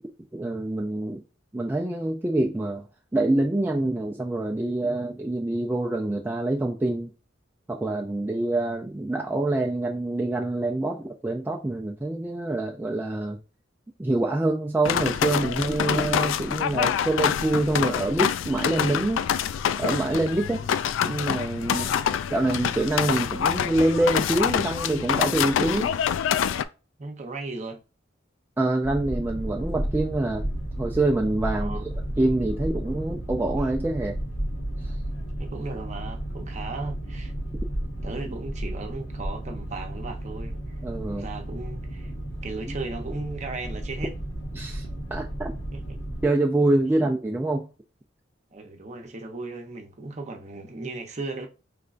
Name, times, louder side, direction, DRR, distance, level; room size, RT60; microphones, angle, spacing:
voice 1, 0.3-1.2 1.5-2.9 3.1-7.1 7.7-13.4 14.0-19.3 19.8-20.7 21.0-22.0 22.3-25.9 28.6-30.5 30.8-31.9 32.2-34.2 34.8-34.9 40.8-41.2 42.7-42.8 44.5-44.9 45.1-45.5 46.2-47.7, right 2 dB, 10° right, 0.3 m, -26 dB
sound 1, 14.8-26.6, left 8 dB, 90° left, 0.3 m, -26 dB
voice 2, 27.0-27.8 31.6-31.8 35.4-37.3 38.0-40.5 41.1-42.1 42.4-44.2 45.7-46.0 47.0-47.1 48.5-51.5, right 3 dB, 40° right, 0.7 m, -36 dB
Boat Water vehicle, 28.8-46.3, right 1 dB, 70° left, 1.5 m, -33 dB
5.1 x 3.2 x 2.5 m
head